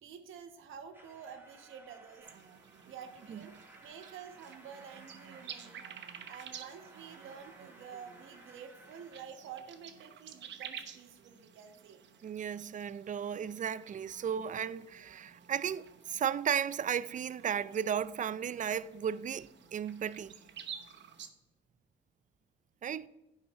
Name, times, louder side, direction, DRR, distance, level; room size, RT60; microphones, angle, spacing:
voice 1, 0.0-2.3 2.9-3.5 3.8-5.8 6.3-12.0, right 7 dB, 85° right, 1.3 m, -49 dB
sound 1, 0.9-9.2, right 2 dB, 10° right, 1.5 m, -58 dB
sound 2, 2.2-21.3, right 8 dB, 65° right, 1.0 m, -52 dB
voice 2, 12.2-20.4 22.8-23.1, right 8 dB, 40° right, 0.4 m, -35 dB
10.0 x 4.8 x 5.6 m
cardioid pair, 90°, 20 cm